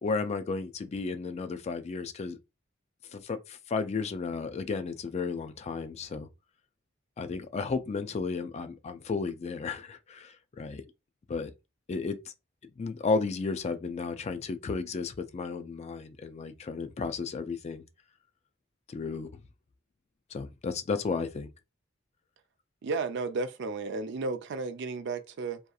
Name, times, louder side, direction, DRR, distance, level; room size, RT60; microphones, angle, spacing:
voice 1, 0.0-2.4 3.1-6.3 7.2-10.8 11.3-11.5 11.9-12.3 12.8-17.8 18.9-19.3 20.3-21.5, left 4 dB, 35° left, 0.3 m, -33 dB
voice 2, 22.8-25.6, right 3 dB, 60° right, 0.4 m, -33 dB
2.7 x 2.4 x 2.3 m
head